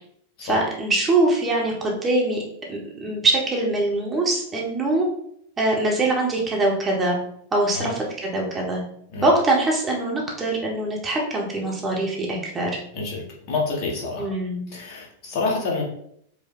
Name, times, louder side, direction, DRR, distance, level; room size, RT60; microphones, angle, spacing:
voice 1, 0.4-2.4 2.7-5.1 5.6-7.2 7.5-8.8 9.2-12.7 14.2-14.6, right 2 dB, 20° right, -2 dB, 1.0 m, -23 dB
voice 2, 12.9-14.3 14.7-15.8, left 3 dB, 45° left, -3 dB, 1.4 m, -28 dB
4.8 x 2.2 x 3.7 m, 0.69 s
figure-of-eight pair, 90°, 0 cm